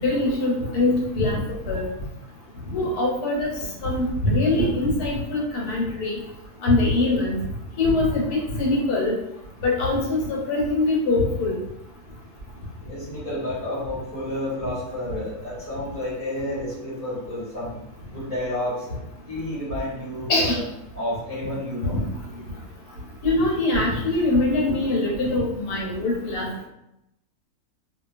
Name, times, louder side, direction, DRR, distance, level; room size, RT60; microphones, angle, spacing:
voice 1, 0.0-1.4 1.6-1.9 2.7-3.5 3.8-6.2 6.6-7.4 7.8-8.2 8.6-9.1 9.6-11.5 20.3-20.6 21.9-22.0 23.2-26.5, left 2 dB, 85° left, -3 dB, 1.3 m, -22 dB
voice 2, 12.9-17.8 18.1-19.0 19.3-20.6 20.9-22.0, left 1 dB, 25° left, -8 dB, 1.4 m, -30 dB
2.7 x 2.2 x 2.4 m, 0.84 s
omnidirectional pair, 1.6 m